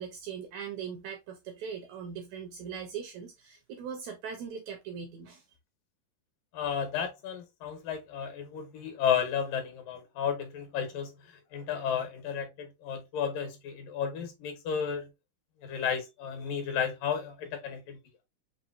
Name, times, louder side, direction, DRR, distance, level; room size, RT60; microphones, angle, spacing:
voice 1, 0.0-5.4, right 7 dB, 80° right, 1.7 m, -40 dB
voice 2, 6.5-11.1 11.5-15.1 15.6-18.0, left 7 dB, 80° left, 2.8 m, -33 dB
6.0 x 2.7 x 2.6 m
omnidirectional pair, 4.0 m